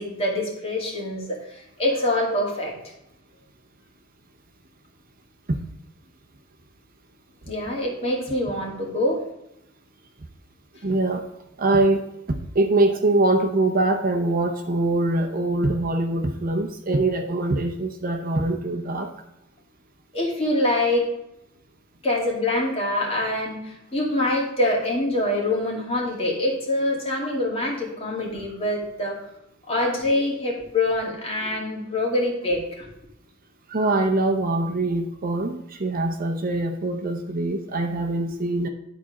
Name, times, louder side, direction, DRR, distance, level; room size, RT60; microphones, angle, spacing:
voice 1, 0.0-2.8 7.5-9.2 20.1-21.1 22.0-29.2 29.6-32.9, left 1 dB, 30° left, -3 dB, 2.4 m, -25 dB
voice 2, 10.8-11.3 11.6-19.1 33.7-38.7, right 2 dB, 45° right, 5 dB, 0.8 m, -23 dB
11.5 x 4.2 x 4.9 m, 0.84 s
head